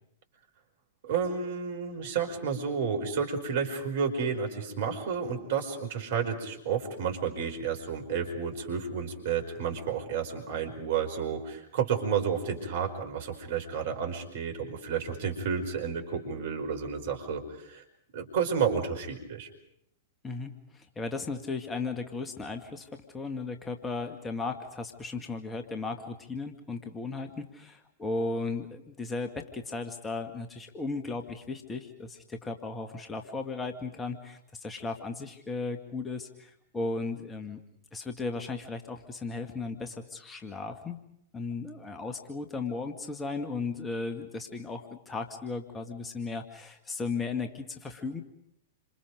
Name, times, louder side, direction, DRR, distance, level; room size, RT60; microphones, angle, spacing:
voice 1, 1.0-17.8 18.1-19.5, right 6 dB, 55° right, 5 dB, 4.8 m, -31 dB
voice 2, 20.2-37.6 37.9-41.0 41.3-48.2, left 3 dB, 15° left, 6 dB, 1.8 m, -36 dB
28.5 x 26.5 x 5.2 m, 0.76 s
figure-of-eight pair, 100°, 0 cm